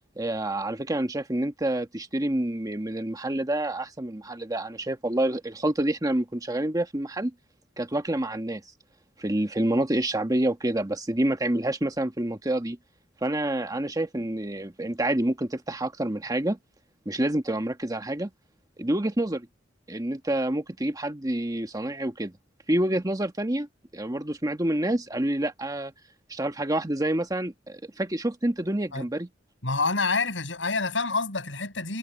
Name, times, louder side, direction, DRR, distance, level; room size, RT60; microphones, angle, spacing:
voice 1, 0.2-7.3 7.8-8.6 9.2-12.8 13.2-16.6 17.0-18.3 18.8-19.5 19.9-22.3 22.7-23.7 23.9-25.9 26.3-29.3, right 1 dB, 20° right, 1.3 m, -27 dB
voice 2, 29.6-32.0, left 3 dB, 90° left, 7.0 m, -27 dB
head